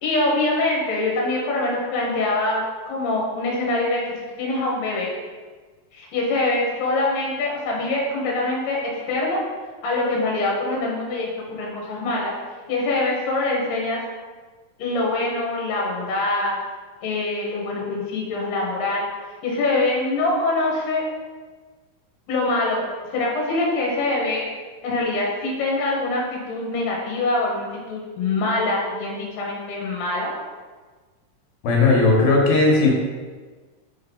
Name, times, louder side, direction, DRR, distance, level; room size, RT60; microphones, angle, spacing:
voice 1, 0.0-5.1 5.9-9.4 9.8-12.3 12.7-14.0 14.8-16.5 17.0-19.1 19.4-21.0 22.3-22.8 23.1-24.4 24.8-30.3, left 2 dB, 60° left, -3 dB, 2.2 m, -24 dB
voice 2, 31.6-32.9, left 3 dB, 90° left, -2 dB, 3.1 m, -16 dB
5.5 x 5.4 x 3.8 m, 1.4 s
omnidirectional pair, 4.2 m